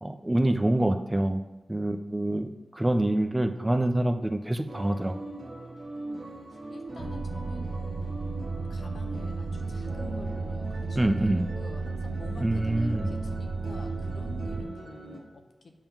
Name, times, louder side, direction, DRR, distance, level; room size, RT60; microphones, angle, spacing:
voice 1, 0.0-1.4 1.7-5.2 10.9-11.4 12.4-13.1, right 1 dB, 10° right, 7 dB, 0.3 m, -26 dB
sound 1, 4.7-15.2, right 2 dB, 40° right, 1.5 m, -41 dB
voice 2, 6.1-7.9 8.7-15.7, left 3 dB, 55° left, 5 dB, 0.8 m, -47 dB
sound 2, 7.0-14.6, right 3 dB, 75° right, 0.7 m, -34 dB
8.8 x 3.6 x 5.8 m, 1.1 s
wide cardioid pair, 170°, 0 cm